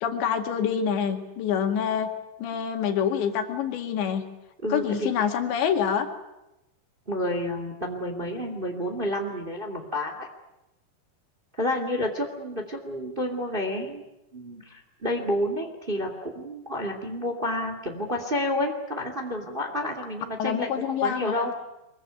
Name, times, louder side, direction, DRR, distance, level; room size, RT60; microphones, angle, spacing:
voice 1, 0.0-2.1 2.4-4.2 4.7-6.1 20.4-21.5, left 8 dB, 85° left, 6 dB, 4.3 m, -26 dB
voice 2, 4.6-5.1 7.1-10.3 11.6-14.0 14.3-21.5, left 1 dB, 15° right, 4 dB, 1.8 m, -30 dB
24.0 x 22.0 x 9.4 m, 0.92 s
omnidirectional pair, 5.0 m